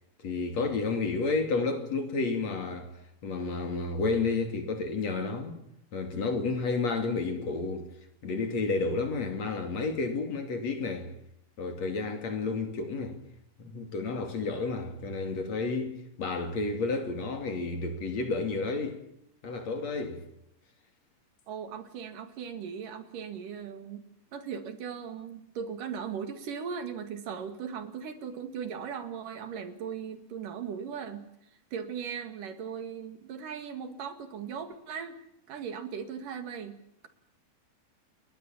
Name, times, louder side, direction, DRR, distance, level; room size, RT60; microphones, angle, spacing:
voice 1, 0.2-2.9 3.2-5.6 5.9-7.9 8.2-11.1 11.6-13.2 13.6-19.0 19.4-20.2, left 3 dB, 50° left, 3.7 m, -31 dB
voice 2, 21.5-24.1 24.3-31.3 31.7-35.2 35.5-37.1, right 7 dB, 70° right, 3.6 m, -38 dB
29.5 x 21.0 x 7.3 m
omnidirectional pair, 4.0 m